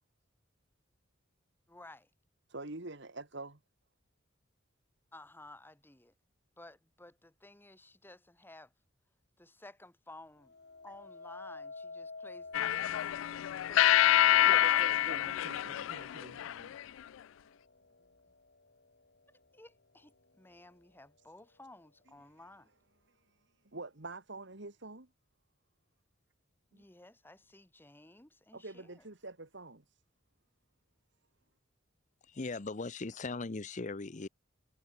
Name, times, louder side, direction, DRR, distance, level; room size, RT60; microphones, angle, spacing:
voice 1, 1.7-2.1 5.1-6.1 6.6-8.7 9.4-10.5 10.8-14.8 19.3-22.7 26.7-29.0, left 2 dB, 10° left, 1.3 m, -55 dB
voice 2, 2.5-3.6 14.4-16.8 22.4-22.5 23.1-25.1 26.7-26.9 28.5-30.0, right 2 dB, 60° right, 2.2 m, -46 dB
sound 1, 10.4-19.5 20.1-20.5, left 3 dB, 55° left, 2.2 m, -52 dB
sound 2, 12.5-16.8, left 12 dB, 75° left, 0.3 m, -27 dB
voice 3, 32.3-34.3, left 3 dB, 40° left, 0.7 m, -39 dB
head